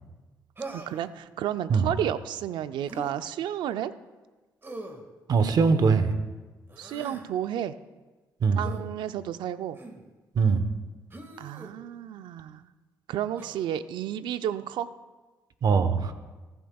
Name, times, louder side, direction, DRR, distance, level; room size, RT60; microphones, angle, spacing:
Human voice, 0.6-1.1 2.9-3.1 4.6-5.0 6.7-7.3 8.6-8.8 9.7-10.0 11.1-11.7 13.4-13.6, right 2 dB, 30° right, 1.8 m, -41 dB
voice 1, 0.7-3.9 6.8-7.8 8.5-9.8 11.4-12.6 13.1-14.9, right 10 dB, 80° right, 12 dB, 0.5 m, -32 dB
voice 2, 5.3-6.1 8.4-8.6 10.3-10.6 15.6-16.1, right 5 dB, 55° right, 10 dB, 1.0 m, -21 dB
15.0 x 14.0 x 2.4 m, 1.2 s
supercardioid pair, 65°, 8 cm